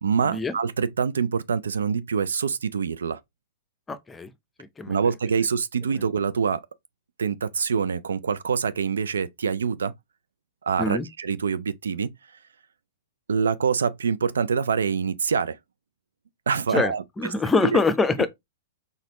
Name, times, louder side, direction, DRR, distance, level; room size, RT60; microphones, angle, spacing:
voice 1, 0.0-3.2 4.9-6.6 7.2-9.9 10.6-12.1 13.3-15.6 16.5-17.3 17.6-17.7, right 6 dB, 80° right, 0.4 m, -25 dB
voice 2, 3.9-4.3 4.6-5.0 10.8-11.1 16.7-18.3, left 3 dB, 15° left, 0.6 m, -24 dB
4.1 x 3.4 x 3.0 m
hypercardioid pair, 110°, 0 cm